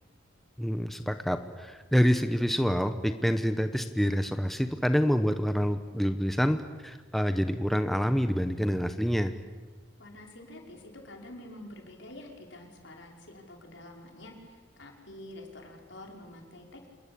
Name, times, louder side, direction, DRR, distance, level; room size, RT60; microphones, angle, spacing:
voice 1, 0.6-9.3, equal, ahead, 8 dB, 0.9 m, -27 dB
voice 2, 10.0-16.9, left 1 dB, 70° left, 2 dB, 5.2 m, -47 dB
27.5 x 21.0 x 8.6 m, 1.3 s
head